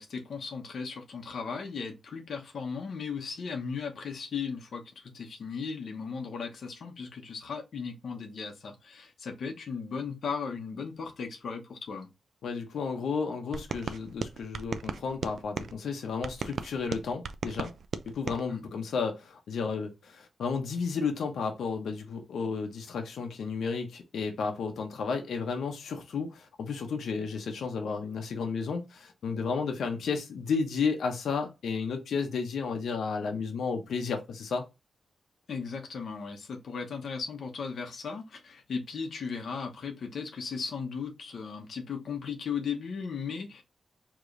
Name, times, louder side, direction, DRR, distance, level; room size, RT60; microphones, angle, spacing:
voice 1, 0.0-12.1 18.5-18.6 35.5-43.6, left 5 dB, 60° left, 0.9 m, -36 dB
voice 2, 12.4-17.7 18.1-34.6, left 5 dB, 85° left, 0.8 m, -32 dB
sound 1, 13.5-15.7 16.2-18.4, right 5 dB, 60° right, 0.4 m, -36 dB
4.8 x 3.0 x 2.5 m
wide cardioid pair, 155°, 0 cm